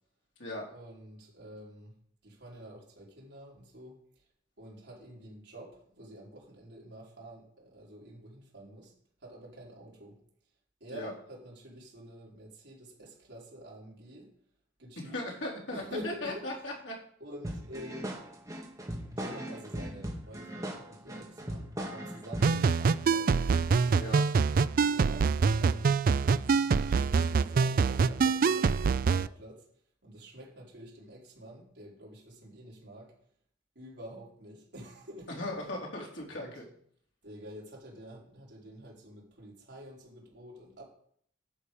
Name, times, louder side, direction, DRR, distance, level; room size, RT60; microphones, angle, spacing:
voice 1, 0.7-1.9 2.2-4.0 4.6-8.9 9.2-10.2 10.8-14.3 14.8-15.3 15.7-16.4 17.2-18.1 19.1-23.4 24.0-24.3 24.9-29.7 30.0-33.1 33.8-35.4 36.4-36.5 37.2-40.9, equal, 65° right, 3.8 m, -48 dB
voice 2, 15.0-16.9 24.0-24.2 35.4-36.7, left 1 dB, 90° left, 3.3 m, -38 dB
sound 1, 17.4-22.6, equal, 20° right, 1.9 m, -39 dB
sound 2, 22.4-29.3, right 5 dB, 50° right, 0.3 m, -25 dB
11.0 x 6.9 x 5.1 m
head